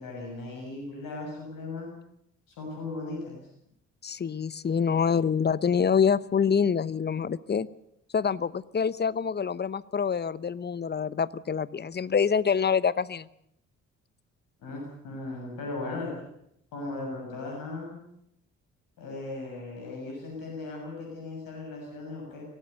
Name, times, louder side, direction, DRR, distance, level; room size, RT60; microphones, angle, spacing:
voice 1, 0.0-1.9 2.5-3.4 14.6-16.1 16.7-18.0 19.0-22.4, left 2 dB, 60° left, 0 dB, 6.9 m, -37 dB
voice 2, 4.0-7.7 8.1-13.3, left 6 dB, 25° left, 19 dB, 0.9 m, -26 dB
24.0 x 18.0 x 6.8 m, 0.75 s
figure-of-eight pair, 45°, 38 cm